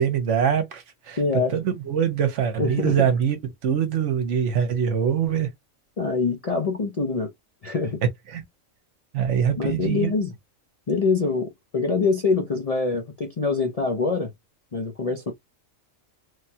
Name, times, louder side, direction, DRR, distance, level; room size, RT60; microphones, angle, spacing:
voice 1, 0.0-3.4 3.6-5.5 8.3-8.4 9.1-10.1, right 8 dB, 65° right, 1.1 m, -23 dB
voice 2, 1.2-1.6 2.6-3.0 6.0-7.3 7.6-8.0 9.6-10.3 10.9-14.3 14.7-15.3, left 4 dB, 45° left, 0.5 m, -24 dB
3.2 x 2.2 x 2.7 m
omnidirectional pair, 1.4 m